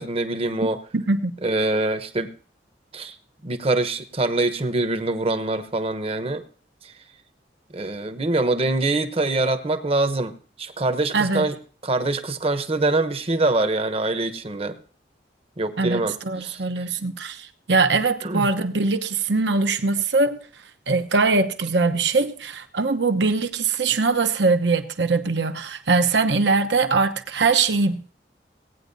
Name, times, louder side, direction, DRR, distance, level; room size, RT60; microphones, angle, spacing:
voice 1, 0.0-0.8 1.4-2.3 2.9-3.1 3.4-6.4 7.7-11.6 11.8-14.8 15.6-16.6 18.2-18.5, right 2 dB, 35° right, 0.9 m, -24 dB
voice 2, 0.9-1.3 11.1-11.5 15.8-20.4 20.9-28.1, right 3 dB, 80° right, 1.0 m, -22 dB
17.5 x 9.2 x 2.7 m
head